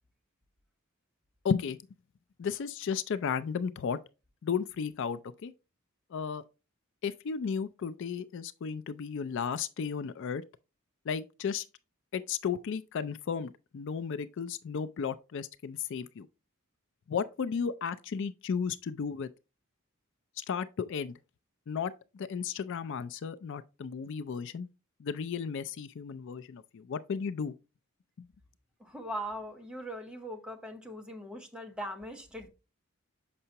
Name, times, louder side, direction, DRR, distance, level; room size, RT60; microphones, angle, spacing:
voice 1, 1.4-1.8 2.4-4.0 4.4-5.5 6.1-6.4 7.0-10.4 11.1-11.7 12.1-16.3 17.1-19.3 20.4-21.1 21.7-24.7 25.0-27.5 28.2-28.3, left 6 dB, 60° left, 0.4 m, -34 dB
voice 2, 28.8-32.5, equal, 5° right, 0.9 m, -40 dB
6.7 x 5.5 x 2.8 m
head